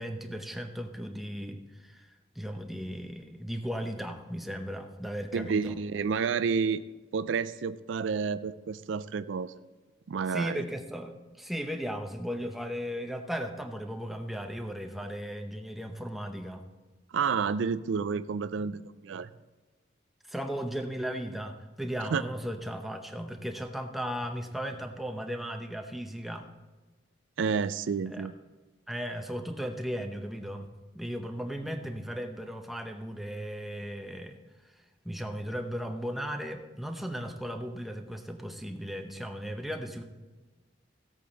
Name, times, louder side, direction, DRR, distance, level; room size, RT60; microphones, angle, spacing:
voice 1, 0.0-2.1 2.3-5.8 10.3-16.6 20.3-26.5 28.0-28.3 28.9-30.7 30.9-34.4 35.0-40.0, equal, ahead, 4 dB, 0.8 m, -36 dB
voice 2, 5.3-6.8 7.1-9.6 10.1-10.6 17.1-19.3 22.1-22.2 27.4-28.3, right 5 dB, 85° right, 14 dB, 0.4 m, -30 dB
16.0 x 8.4 x 4.0 m, 1.3 s
head